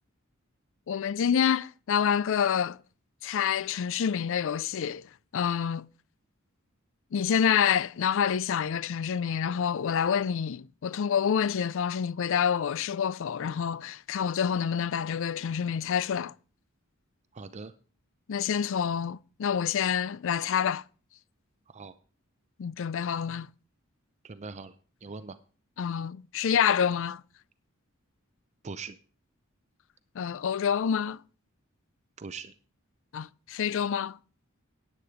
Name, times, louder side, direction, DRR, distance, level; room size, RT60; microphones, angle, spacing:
voice 1, 0.9-2.8 3.2-5.9 7.1-16.3 18.3-20.8 22.6-23.5 25.8-27.2 30.2-31.2 33.1-34.2, left 8 dB, 65° left, 0.4 m, -27 dB
voice 2, 17.3-17.7 21.7-22.0 24.2-24.8 25.0-25.4 28.6-29.0 32.2-32.5, right 4 dB, 35° right, 0.6 m, -41 dB
9.7 x 9.5 x 4.9 m
head